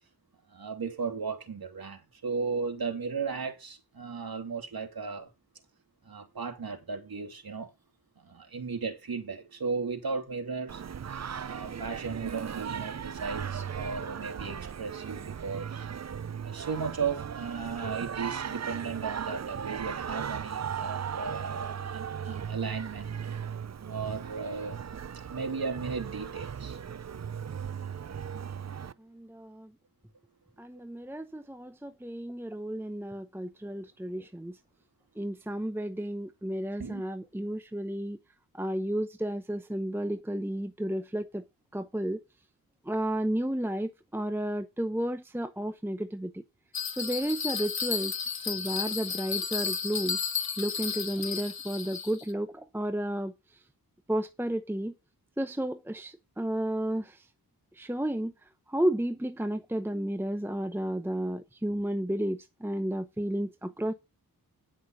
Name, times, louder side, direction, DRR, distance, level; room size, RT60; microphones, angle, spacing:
voice 1, 0.5-5.3 6.0-7.7 8.2-10.8 11.4-15.9 16.4-23.2 23.8-24.9 25.3-26.8 28.8-28.9 36.8-37.0, right 5 dB, 75° right, 2.9 m, -35 dB
Singing, 10.7-28.9, right 7 dB, 45° right, 0.6 m, -37 dB
voice 2, 29.1-29.7 30.6-34.5 35.2-38.2 38.5-41.4 41.7-42.2 42.9-46.4 47.0-48.1 48.5-50.2 50.6-53.3 54.1-54.9 55.4-57.1 57.8-58.3 58.7-63.9, right 1 dB, 5° right, 0.8 m, -32 dB
Bell, 46.7-52.3, left 6 dB, 75° left, 1.5 m, -33 dB
11.0 x 6.1 x 5.6 m
wide cardioid pair, 85°, 37 cm